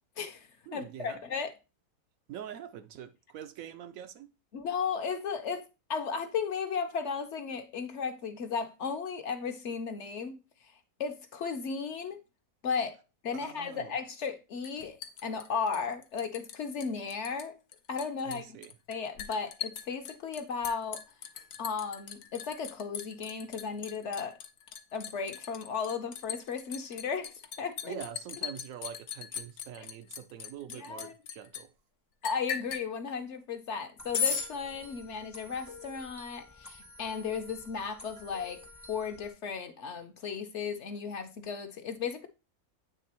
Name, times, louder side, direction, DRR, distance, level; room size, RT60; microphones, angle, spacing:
voice 1, 0.2-1.5 4.5-5.6 5.9-10.7 11.0-12.2 12.6-13.0 13.2-17.6 17.9-18.4 18.9-21.0 21.6-24.4 24.9-28.0 29.8-29.9 30.7-31.1 32.2-38.6 38.9-42.3, left 5 dB, 60° left, 0.9 m, -35 dB
voice 2, 0.7-1.2 2.3-4.3 13.3-13.9 18.2-18.7 27.8-31.7, right 10 dB, 70° right, 0.9 m, -44 dB
Liquid, 14.6-16.6 16.8-17.5 17.7-31.6 32.2-32.9 34.1-34.5, left 7 dB, 90° left, 1.2 m, -37 dB
sound 1, 34.0-39.3, left 2 dB, 20° left, 0.6 m, -51 dB
8.5 x 3.3 x 4.2 m
omnidirectional pair, 1.5 m